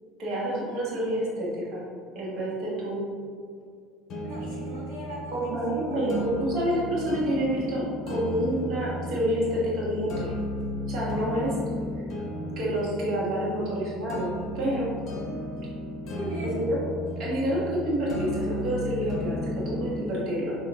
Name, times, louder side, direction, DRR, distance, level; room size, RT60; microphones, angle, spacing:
voice 1, 0.2-1.8 2.1-3.0 5.3-10.3 10.9-11.5 12.6-14.9 16.4-16.9 17.2-20.5, equal, 50° right, -6 dB, 1.2 m, -28 dB
sound 1, 4.1-20.1, left 1 dB, 45° left, 0.7 m, -34 dB
voice 2, 4.2-5.5 5.8-6.2 16.1-16.5, equal, 70° right, -9 dB, 1.0 m, -37 dB
5.5 x 2.4 x 2.5 m, 2.1 s
figure-of-eight pair, 65°, 0 cm